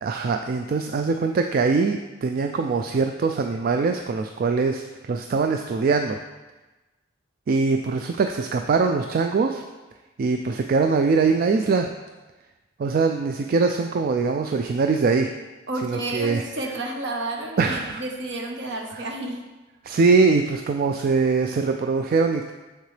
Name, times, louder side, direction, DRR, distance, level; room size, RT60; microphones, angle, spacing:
voice 1, 0.0-6.2 7.5-9.6 10.2-11.9 12.8-15.3 15.8-16.4 17.6-18.0 19.0-19.1 19.8-22.5, right 4 dB, 50° right, 5 dB, 0.3 m, -22 dB
voice 2, 15.7-19.4, right 2 dB, 65° right, 2 dB, 1.0 m, -31 dB
6.6 x 6.5 x 3.3 m, 1.2 s
head